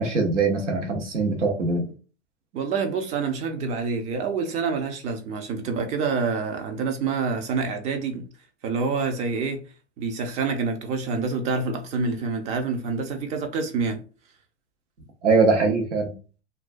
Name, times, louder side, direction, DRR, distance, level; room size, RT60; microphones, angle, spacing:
voice 1, 0.0-1.8 15.2-16.1, right 3 dB, 90° right, 0.8 m, -22 dB
voice 2, 2.5-8.3 8.6-9.7 10.0-14.0, right 4 dB, 20° right, 0.3 m, -27 dB
2.3 x 2.2 x 2.4 m
hypercardioid pair, 110°, 35 cm